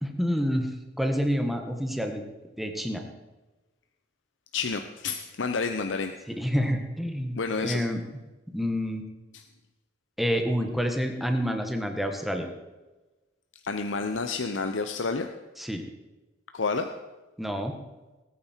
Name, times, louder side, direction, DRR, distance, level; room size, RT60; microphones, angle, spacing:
voice 1, 0.0-0.7 1.0-2.2 2.6-3.0 6.3-8.0 8.5-9.0 10.2-12.5 15.6-15.9 17.4-17.8, equal, ahead, 4 dB, 1.4 m, -28 dB
voice 2, 4.5-6.1 7.3-7.8 9.3-9.4 13.6-15.3 16.5-16.9, left 4 dB, 85° left, 7 dB, 0.7 m, -29 dB
19.5 x 9.4 x 4.5 m, 1.1 s
head